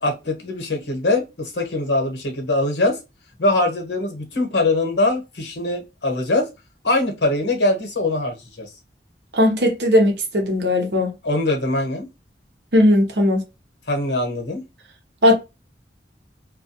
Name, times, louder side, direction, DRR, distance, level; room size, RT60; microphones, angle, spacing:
voice 1, 0.0-3.0 3.4-6.5 6.8-8.7 11.2-12.1 13.9-14.6, left 2 dB, 75° left, 1.0 m, -22 dB
voice 2, 9.3-11.1 12.7-13.4 15.2-15.4, left 1 dB, 65° right, 0.8 m, -17 dB
2.3 x 2.2 x 2.7 m
head